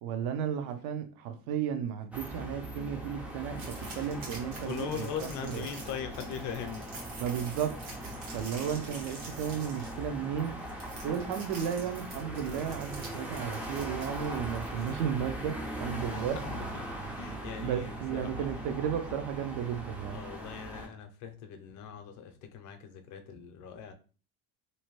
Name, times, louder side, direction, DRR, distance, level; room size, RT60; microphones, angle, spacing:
voice 1, 0.0-5.1 5.5-5.7 7.2-7.8 8.3-10.5 11.0-16.4 17.6-20.2, right 8 dB, 70° right, 0.6 m, -34 dB
sound 1, 2.1-20.9, right 1 dB, 5° right, 0.4 m, -40 dB
sound 2, 3.5-15.3, right 3 dB, 85° right, 1.4 m, -48 dB
voice 2, 4.6-6.9 8.6-8.9 16.3-18.5 20.1-23.9, left 8 dB, 55° left, 0.6 m, -41 dB
2.8 x 2.1 x 3.0 m
cardioid pair, 125°, 37 cm